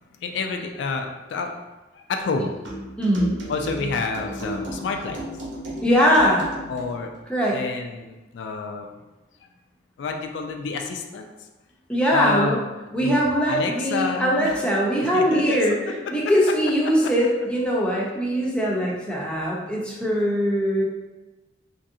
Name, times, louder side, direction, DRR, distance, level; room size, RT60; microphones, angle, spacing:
voice 1, 0.2-1.5 1.9-2.6 3.5-5.2 6.7-7.1 7.5-8.9 10.0-11.3 12.1-12.6 12.9-13.2 13.5-14.6 15.0-15.6 17.0-17.1, left 4 dB, 70° left, 4 dB, 0.3 m, -28 dB
sound 1, 2.6-6.9, right 1 dB, 85° right, 0.8 m, -35 dB
voice 2, 3.0-3.4 5.8-6.5 7.3-7.6 11.9-12.6 12.9-15.7 16.1-20.8, equal, 5° left, -4 dB, 0.5 m, -21 dB
3.1 x 2.5 x 2.6 m, 1.1 s
head